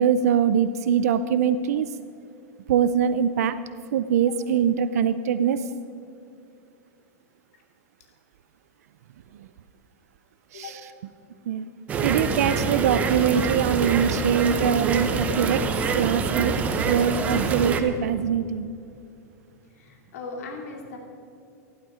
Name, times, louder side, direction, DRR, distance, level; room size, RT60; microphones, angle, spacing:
voice 1, 0.0-1.9 2.7-3.6 3.9-5.6 10.5-10.7 11.5-11.6 12.0-15.6 15.9-16.6 16.8-18.7, right 8 dB, 75° right, 12 dB, 0.5 m, -23 dB
voice 2, 10.5-10.8 19.8-21.0, left 4 dB, 70° left, 1 dB, 2.4 m, -38 dB
sound 1, 11.9-17.8, right 4 dB, 15° right, 0.8 m, -25 dB
15.0 x 11.5 x 5.0 m, 2.5 s
supercardioid pair, 170°, 8 cm